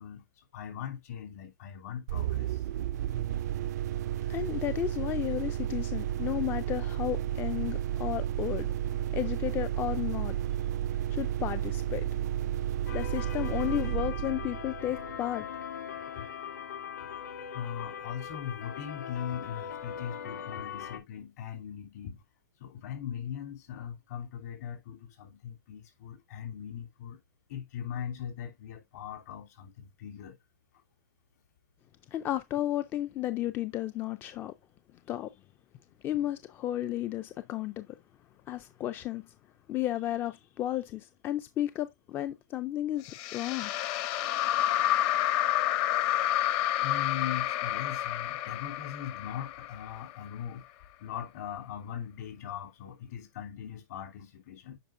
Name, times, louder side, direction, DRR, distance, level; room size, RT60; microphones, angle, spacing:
voice 1, 0.0-2.7 16.2-16.3 17.5-22.2 22.6-27.2 27.5-30.4 44.9-45.1 46.8-54.8, left 9 dB, 60° left, 3.0 m, -40 dB
sound 1, 2.1-15.6, right 11 dB, 60° right, 0.4 m, -32 dB
voice 2, 4.3-10.4 11.1-12.1 12.9-15.5 32.1-34.5 35.1-35.3 36.0-37.9 38.5-39.3 39.7-43.7, left 13 dB, 20° left, 0.4 m, -33 dB
sound 2, 12.9-21.0, left 8 dB, 75° left, 2.6 m, -41 dB
sound 3, 43.1-50.3, left 13 dB, 35° left, 0.9 m, -29 dB
9.1 x 5.1 x 2.5 m
hypercardioid pair, 145°, 10 cm